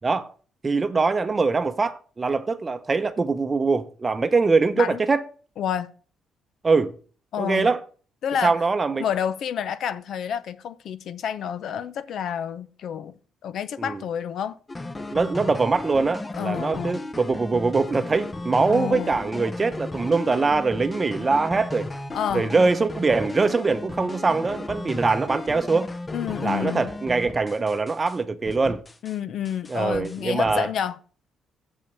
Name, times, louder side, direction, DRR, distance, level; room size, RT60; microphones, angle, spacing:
voice 1, 0.6-5.3 6.6-6.9 7.4-7.8 8.4-9.0 13.8-14.0 15.1-21.9 22.3-25.9 26.4-28.8 29.7-30.7, right 4 dB, 30° right, 0.7 m, -23 dB
voice 2, 5.6-5.9 7.3-7.7 8.2-8.6 9.0-13.1 13.4-14.6 16.4-17.0 18.7-19.1 22.1-22.5 26.1-26.9 29.0-31.0, left 8 dB, 70° left, 0.6 m, -29 dB
sound 1, 14.7-28.2 28.5-29.2 29.4-30.6, left 2 dB, 20° left, 0.7 m, -35 dB
7.3 x 5.3 x 6.8 m
cardioid pair, 90°, 0 cm